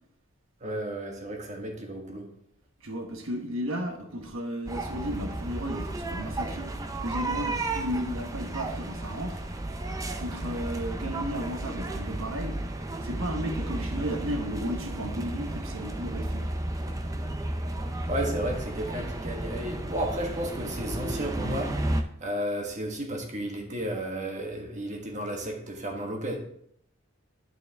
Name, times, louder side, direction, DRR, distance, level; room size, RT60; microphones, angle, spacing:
voice 1, 0.6-2.3 18.1-21.8 22.2-26.4, right 1 dB, 35° right, 1.4 m, -33 dB
voice 2, 2.8-6.7 7.0-9.4 10.2-12.6 13.0-16.5, equal, 80° right, 1.2 m, -34 dB
sound 1, 4.7-22.0, right 1 dB, 15° right, 0.5 m, -33 dB
11.5 x 4.7 x 3.5 m
head